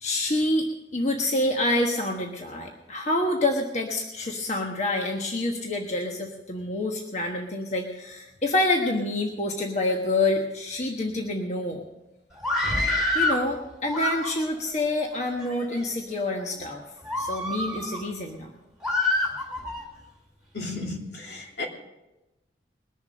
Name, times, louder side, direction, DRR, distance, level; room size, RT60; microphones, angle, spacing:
voice 1, 0.0-11.8 13.1-16.8 17.2-18.5, left 2 dB, 40° left, 1.2 m, -27 dB
Screaming, 12.3-13.4 13.8-14.6 15.3-15.8 16.4-16.5 17.0-18.0 18.8-19.8, left 2 dB, 5° right, 2.1 m, -27 dB
voice 2, 20.5-21.6, left 2 dB, 75° left, 2.8 m, -34 dB
21.0 x 7.1 x 6.4 m
head